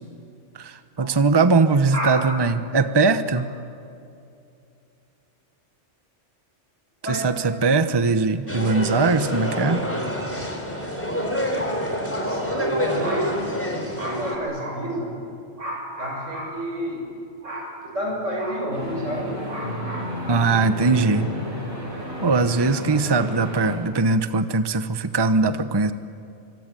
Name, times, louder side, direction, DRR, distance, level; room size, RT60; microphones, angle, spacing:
voice 1, 0.5-3.5 7.1-9.8 20.3-21.3 22.2-25.9, right 4 dB, 25° right, 11 dB, 0.9 m, -20 dB
sound 1, 8.5-14.4, equal, 10° left, 3.8 m, -27 dB
voice 2, 11.9-15.2 15.6-17.0 17.4-20.4, equal, 90° right, -1 dB, 7.7 m, -29 dB
sound 2, 18.7-23.8, left 1 dB, 45° right, 7.2 m, -32 dB
25.0 x 24.5 x 9.1 m, 2.6 s
omnidirectional pair, 1.2 m